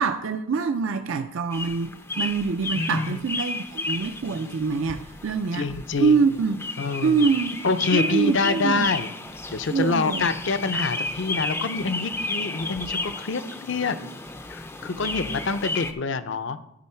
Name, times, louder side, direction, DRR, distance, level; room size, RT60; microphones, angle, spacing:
voice 1, 0.0-5.7 6.0-6.6 7.0-7.6 7.9-8.9 9.7-10.3, right 5 dB, 70° right, 0.5 m, -24 dB
sound 1, 1.5-15.9, left 2 dB, 10° left, 0.4 m, -33 dB
voice 2, 2.7-3.2 5.5-6.3 6.8-7.3 7.6-9.2 9.5-14.0 14.5-16.6, left 4 dB, 60° left, 0.6 m, -26 dB
13.5 x 4.6 x 4.4 m
head